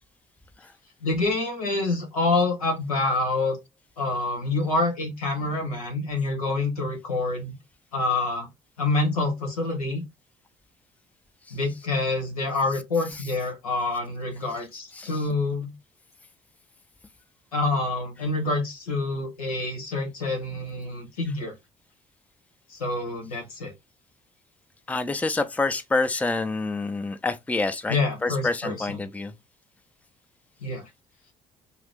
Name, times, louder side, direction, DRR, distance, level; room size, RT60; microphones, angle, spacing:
voice 1, 1.0-3.6 4.0-7.5 7.9-8.5 8.8-10.0 11.5-15.7 17.5-21.5 22.7-23.7 27.9-29.0 30.6-30.9, left 2 dB, 90° left, 1.0 m, -27 dB
voice 2, 24.9-29.3, left 3 dB, 10° left, 0.5 m, -27 dB
2.7 x 2.4 x 3.5 m
hypercardioid pair, 50°, 18 cm